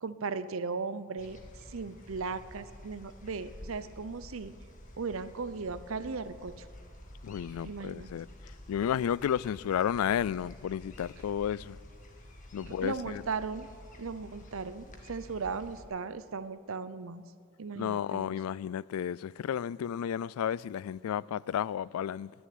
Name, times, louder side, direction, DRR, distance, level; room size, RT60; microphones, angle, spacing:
voice 1, 0.0-1.4 1.7-4.5 5.0-6.7 7.6-8.1 12.6-13.7 14.0-17.2 17.6-18.3, right 4 dB, 70° right, 0.7 m, -37 dB
sound 1, 1.2-15.8, left 1 dB, 35° left, 1.7 m, -50 dB
voice 2, 7.2-8.3 8.7-11.8 12.5-13.2 17.8-22.3, left 9 dB, 85° left, 0.3 m, -32 dB
19.5 x 7.1 x 9.1 m
head